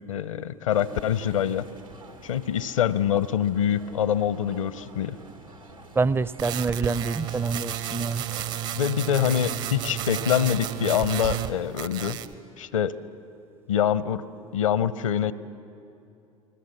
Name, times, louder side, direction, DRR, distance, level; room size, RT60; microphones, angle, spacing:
voice 1, 0.1-1.7 2.2-5.2 8.8-12.2 12.6-12.9 13.7-14.2 14.5-15.3, left 9 dB, 75° left, 17 dB, 0.7 m, -25 dB
sound 1, 0.7-11.1, right 2 dB, 90° right, 2.0 m, -47 dB
voice 2, 6.0-8.3, right 4 dB, 15° right, 20 dB, 0.5 m, -26 dB
sound 2, 6.4-11.5 11.8-12.3, right 11 dB, 60° right, 1.1 m, -32 dB
29.5 x 21.0 x 6.9 m, 2.7 s
figure-of-eight pair, 65°, 17 cm